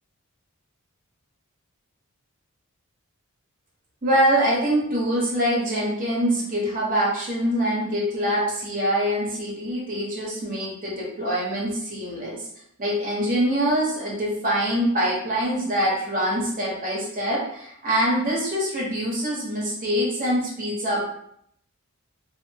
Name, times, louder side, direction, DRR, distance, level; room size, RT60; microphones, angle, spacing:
voice 1, 4.0-12.4 12.8-21.1, equal, 40° right, -5 dB, 1.0 m, -24 dB
2.9 x 2.0 x 2.7 m, 0.71 s
head